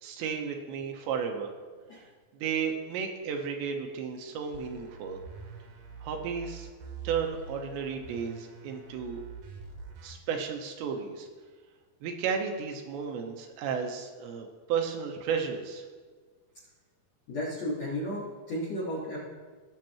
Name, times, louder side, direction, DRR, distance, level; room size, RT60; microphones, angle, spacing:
voice 1, 0.0-1.5 2.3-5.2 6.0-6.7 7.0-9.2 10.0-11.3 12.0-15.8, right 6 dB, 80° right, 3 dB, 3.0 m, -33 dB
sound 1, 4.5-10.1, right 5 dB, 65° right, 2.4 m, -45 dB
voice 2, 17.3-19.2, equal, 60° left, -6 dB, 1.8 m, -33 dB
18.0 x 6.5 x 3.0 m, 1.5 s
omnidirectional pair, 5.3 m